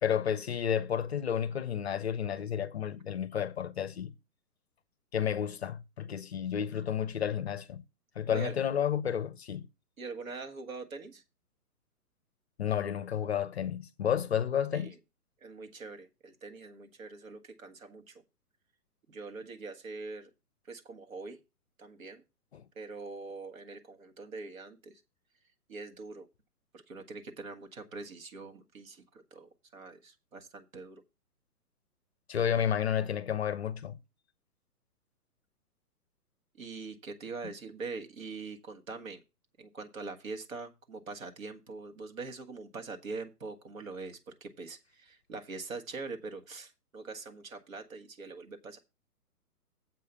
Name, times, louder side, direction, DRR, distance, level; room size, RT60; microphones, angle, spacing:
voice 1, 0.0-4.1 5.1-7.8 8.2-9.7 12.6-14.9 22.5-22.6 32.3-34.0, left 9 dB, 45° left, 0.6 m, -31 dB
voice 2, 10.0-11.2 14.7-15.0 15.4-18.2 19.1-20.3 20.6-21.4 21.8-22.2 22.7-25.0 25.7-26.3 26.7-31.0 36.6-39.2 39.6-48.8, right 4 dB, 60° right, 1.7 m, -43 dB
7.7 x 4.8 x 6.8 m
figure-of-eight pair, 130°, 47 cm